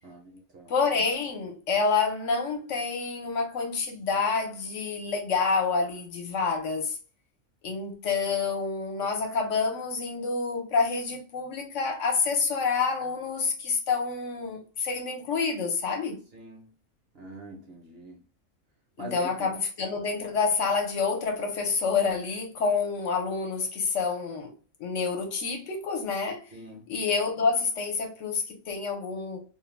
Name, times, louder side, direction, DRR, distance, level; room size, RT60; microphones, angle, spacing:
voice 1, 0.0-0.7 16.3-16.7 17.1-18.2 19.0-19.5 26.5-26.9, right 1 dB, 55° right, 0.8 m, -44 dB
voice 2, 0.7-7.0 7.6-16.2 19.0-24.5 24.8-26.5 26.9-29.4, left 4 dB, 70° left, 1.0 m, -28 dB
2.5 x 2.1 x 3.0 m
omnidirectional pair, 1.4 m